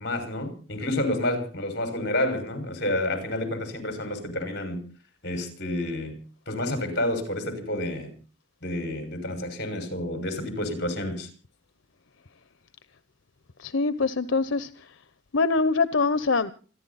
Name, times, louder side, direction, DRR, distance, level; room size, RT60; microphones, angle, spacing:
voice 1, 0.0-4.8 5.2-6.2 6.5-8.1 8.6-11.3, left 1 dB, 55° left, 5.9 m, -29 dB
voice 2, 13.6-14.7 15.3-16.5, left 4 dB, 85° left, 0.9 m, -23 dB
28.0 x 11.0 x 4.2 m
head